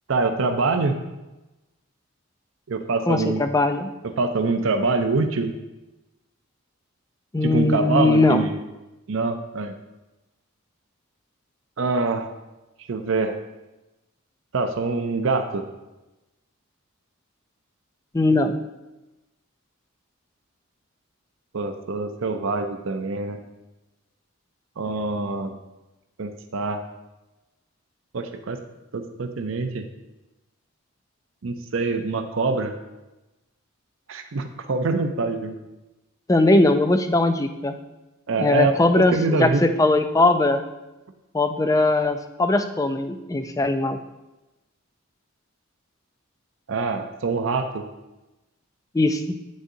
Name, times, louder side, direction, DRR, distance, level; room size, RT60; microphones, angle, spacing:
voice 1, 0.1-1.0 2.7-3.5 4.2-5.5 7.4-8.5 9.1-9.7 11.8-12.3 12.9-13.4 14.5-15.7 21.5-23.4 24.8-25.5 26.2-26.8 28.1-28.6 28.9-29.9 31.4-32.7 34.1-35.6 38.3-39.6 46.7-47.8, right 3 dB, 60° right, 6 dB, 0.5 m, -25 dB
voice 2, 3.1-3.9 7.3-8.5 18.1-18.6 36.3-37.7 38.4-40.6 41.3-44.0 48.9-49.3, left 2 dB, 15° left, 8 dB, 0.3 m, -20 dB
9.2 x 6.3 x 2.7 m, 1.0 s
head